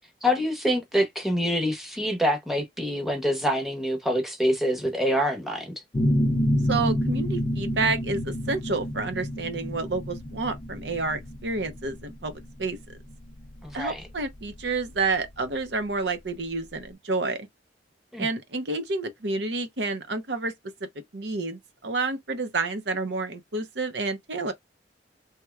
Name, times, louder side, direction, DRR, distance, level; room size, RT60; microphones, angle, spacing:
voice 1, 0.2-5.7 13.6-14.0 18.1-18.3, equal, ahead, 0.9 m, -26 dB
sound 1, 5.9-15.3, equal, 25° left, 0.5 m, -28 dB
voice 2, 6.7-13.0 13.7-17.5 18.2-20.5 21.1-24.5, right 3 dB, 80° right, 0.8 m, -29 dB
3.4 x 3.0 x 2.3 m
head